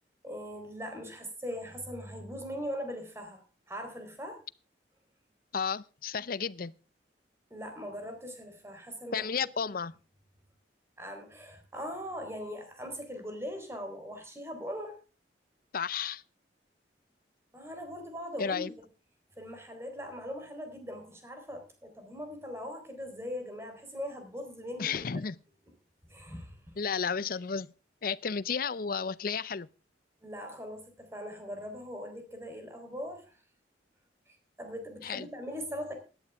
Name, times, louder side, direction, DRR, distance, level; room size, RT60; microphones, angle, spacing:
voice 1, 0.2-4.4 7.5-9.3 9.6-9.7 11.0-15.0 17.5-18.7 19.4-24.9 26.0-26.6 30.2-33.4 34.3-35.9, equal, 15° right, 3.8 m, -40 dB
voice 2, 5.5-6.7 9.1-9.9 15.7-16.2 18.4-18.7 24.8-25.4 26.8-27.7 28.0-29.7 35.0-35.3, left 6 dB, 50° left, 0.6 m, -32 dB
17.0 x 11.5 x 3.5 m
head